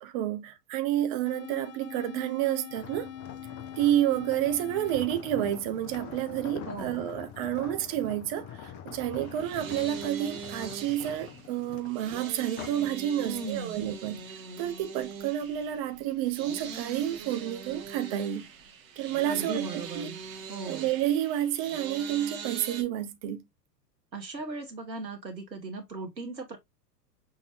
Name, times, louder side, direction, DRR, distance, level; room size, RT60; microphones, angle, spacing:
voice 1, 0.0-3.1 3.8-14.3 14.6-18.5 19.0-19.7 20.0-20.1 20.7-23.4, right 12 dB, 25° right, 0.4 m, -30 dB
sound 1, 1.3-6.3, left 10 dB, 75° left, 0.9 m, -44 dB
sound 2, 2.7-12.9 13.4-13.6, left 9 dB, 25° left, 0.6 m, -44 dB
voice 2, 6.7-7.0 13.2-13.8 19.2-20.2 20.5-20.9 24.1-26.6, right 3 dB, 90° right, 1.2 m, -38 dB
sound 3, 9.1-22.8, right 6 dB, 55° right, 1.4 m, -42 dB
6.2 x 2.7 x 3.0 m
figure-of-eight pair, 100°, 50 cm